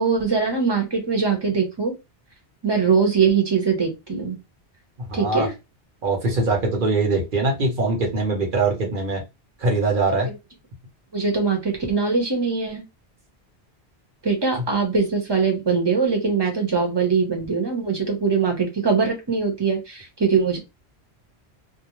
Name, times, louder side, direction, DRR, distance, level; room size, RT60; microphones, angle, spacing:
voice 1, 0.0-1.9 2.6-4.4 5.1-5.5 10.2-10.4 11.1-12.8 14.2-20.6, right 5 dB, 25° right, 0.8 m, -22 dB
voice 2, 5.1-5.5 6.0-9.2 9.6-10.3, right 3 dB, 55° right, 0.9 m, -22 dB
2.5 x 2.0 x 2.9 m
omnidirectional pair, 1.1 m